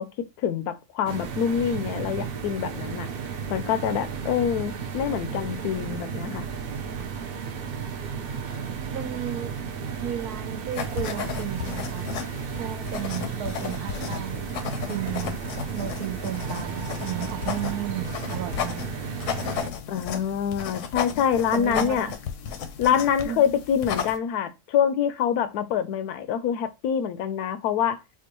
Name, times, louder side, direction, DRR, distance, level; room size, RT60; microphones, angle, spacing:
voice 1, 0.0-3.1 3.5-6.5 19.9-22.1 22.8-28.0, left 8 dB, 85° left, 1.1 m, -26 dB
sound 1, 1.0-19.7, right 6 dB, 70° right, 0.5 m, -33 dB
voice 2, 8.9-9.6 10.0-12.0 12.6-14.4 14.9-15.4 15.7-19.0 21.5-22.1 23.2-23.4, right 11 dB, 85° right, 1.2 m, -33 dB
sound 2, 10.7-24.2, left 8 dB, 70° left, 0.8 m, -34 dB
4.4 x 2.3 x 3.0 m
omnidirectional pair, 1.6 m